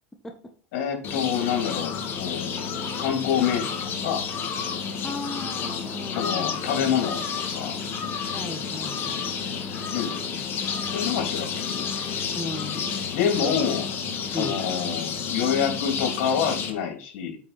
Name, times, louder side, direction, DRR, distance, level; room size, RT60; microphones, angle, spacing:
voice 1, 0.7-3.8 4.0-4.2 6.1-7.8 9.9-10.2 10.9-11.9 13.1-13.9 14.1-17.4, left 8 dB, 70° left, 4 dB, 3.4 m, -27 dB
sound 1, 1.0-16.7, left 6 dB, 35° left, 1.9 m, -30 dB
voice 2, 5.0-6.6 8.3-9.3 12.3-13.0 13.4-13.6 14.3-14.6, left 2 dB, 10° left, 3 dB, 1.4 m, -36 dB
8.6 x 5.1 x 4.4 m, 0.42 s
supercardioid pair, 120°, 6 cm